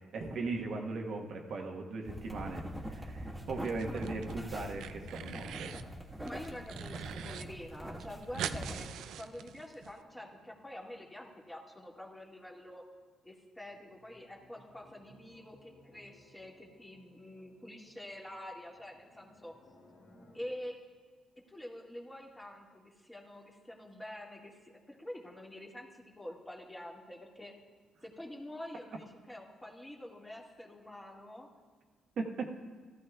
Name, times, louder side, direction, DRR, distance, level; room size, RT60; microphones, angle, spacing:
voice 1, 0.0-5.8 32.2-32.6, right 3 dB, 65° right, 1 dB, 1.3 m, -38 dB
sound 1, 1.7-12.4 13.6-20.4, left 1 dB, 75° left, 2.8 m, -60 dB
sound 2, 2.0-8.9, equal, 15° right, 1.6 m, -43 dB
sound 3, 3.6-4.3 4.6-5.9 6.3-7.4 7.7-7.8 8.0-9.9, right 9 dB, 80° right, 0.4 m, -42 dB
voice 2, 6.2-8.9 9.2-12.9 13.2-19.5 20.3-20.8 21.4-27.6 28.0-31.5, left 1 dB, 10° left, -2 dB, 2.0 m, -47 dB
14.5 x 14.0 x 2.4 m, 1.5 s
cardioid pair, 90°, 0 cm